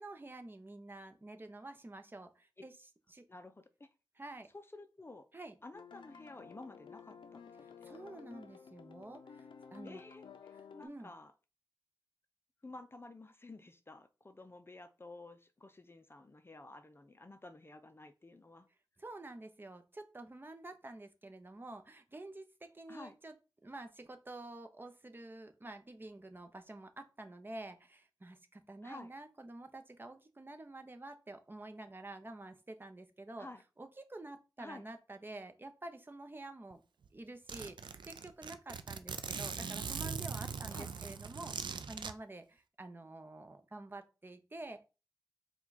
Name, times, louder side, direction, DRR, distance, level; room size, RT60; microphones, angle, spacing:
voice 1, 0.0-2.7 3.1-3.3 4.2-4.5 5.3-5.6 7.6-10.0 10.8-11.1 19.0-23.3 23.6-33.5 33.8-36.8 37.1-44.8, right 2 dB, 25° right, 7 dB, 0.7 m, -49 dB
voice 2, 3.3-3.9 4.5-5.3 5.6-8.2 9.8-11.3 12.6-18.7 22.9-23.1 28.8-29.1 33.4-33.6 34.6-34.9 40.7-40.9, left 2 dB, 30° left, 9 dB, 0.5 m, -52 dB
sound 1, 5.7-10.9, left 6 dB, 85° left, 0.5 m, -53 dB
Zipper (clothing), 36.7-36.8 37.0-37.1 37.5-42.1, right 6 dB, 75° right, 0.4 m, -41 dB
4.5 x 2.3 x 4.0 m, 0.30 s
cardioid pair, 60°, 8 cm